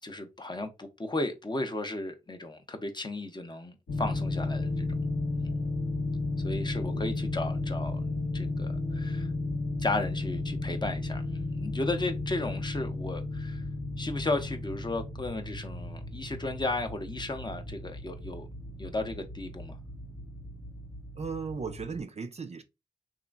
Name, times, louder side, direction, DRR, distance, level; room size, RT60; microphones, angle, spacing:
voice 1, 0.0-4.9 5.3-5.6 6.4-8.0 8.3-9.3 9.8-13.6 14.0-18.5 18.8-19.8, left 2 dB, 25° left, 0.6 m, -34 dB
sound 1, 3.9-22.0, left 2 dB, 90° left, 0.9 m, -34 dB
voice 2, 21.2-22.6, right 5 dB, 40° right, 0.4 m, -36 dB
2.9 x 2.4 x 2.3 m
cardioid pair, 45°, 17 cm